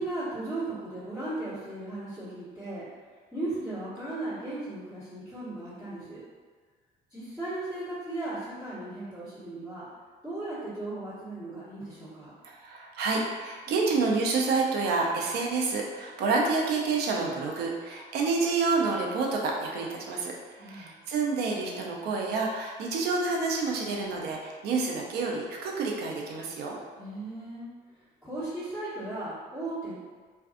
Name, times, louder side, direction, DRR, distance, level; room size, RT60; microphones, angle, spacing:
voice 1, 0.0-2.8 3.3-6.2 7.1-9.9 10.2-12.3 20.6-20.9 27.0-27.7 28.2-30.0, right 2 dB, 5° right, -18 dB, 1.3 m, -36 dB
voice 2, 12.4-26.8, right 4 dB, 75° right, 0 dB, 0.5 m, -28 dB
2.5 x 2.3 x 2.4 m, 1.5 s
cardioid pair, 110°, 17 cm